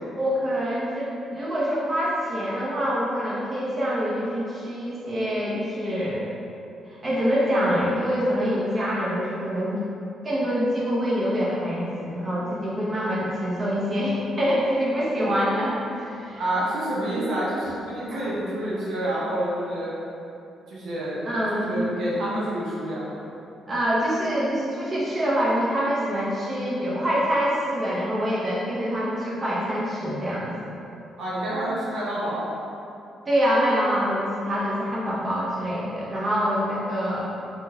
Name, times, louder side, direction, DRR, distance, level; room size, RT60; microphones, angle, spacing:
voice 1, 0.1-6.2 6.9-9.8 10.2-16.4 18.1-18.3 21.2-21.9 23.7-30.5 33.3-37.2, equal, 30° right, -7 dB, 0.7 m, -25 dB
voice 2, 16.4-19.9 20.7-21.2 21.5-23.2 31.2-32.5, right 1 dB, 75° right, -7 dB, 0.7 m, -28 dB
3.6 x 2.2 x 2.7 m, 2.8 s
cardioid pair, 90°, 0 cm